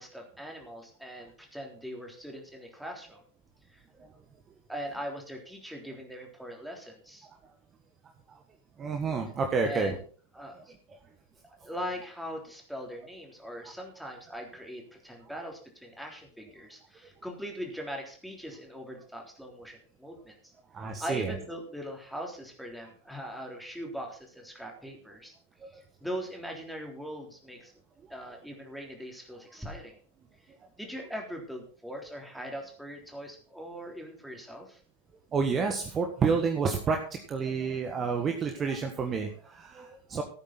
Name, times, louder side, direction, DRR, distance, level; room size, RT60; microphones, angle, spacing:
voice 1, 0.0-3.2 3.7-3.8 4.7-7.3 9.6-10.0 10.3-10.7 11.6-20.5 20.8-25.3 25.7-27.7 28.1-30.0 30.8-34.8, equal, ahead, 1 dB, 3.5 m, -41 dB
voice 2, 8.8-10.0 10.5-10.6 10.9-11.0 20.7-21.3 25.6-25.7 35.3-37.0 37.3-40.2, right 5 dB, 25° right, 4 dB, 1.5 m, -29 dB
16.0 x 9.0 x 4.0 m, 0.43 s
figure-of-eight pair, 90°, 0 cm